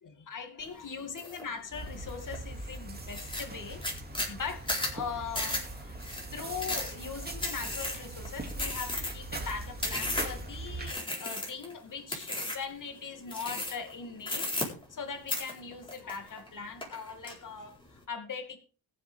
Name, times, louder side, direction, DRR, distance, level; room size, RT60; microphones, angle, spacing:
voice 1, 0.0-4.6 4.9-6.0 6.3-18.6, left 5 dB, 50° left, 5 dB, 2.6 m, -40 dB
sound 1, 1.2-1.4 1.9-2.4 2.7-2.8 3.1-10.5 10.9-11.7 12.1-12.7 13.3-13.9 14.2-15.0 15.3-16.5 16.8-17.3, left 1 dB, 10° left, 4.2 m, -34 dB
sound 2, 1.7-10.9, right 2 dB, 25° right, 2.4 m, -41 dB
20.5 x 7.9 x 3.5 m, 0.39 s
cardioid pair, 125°, 41 cm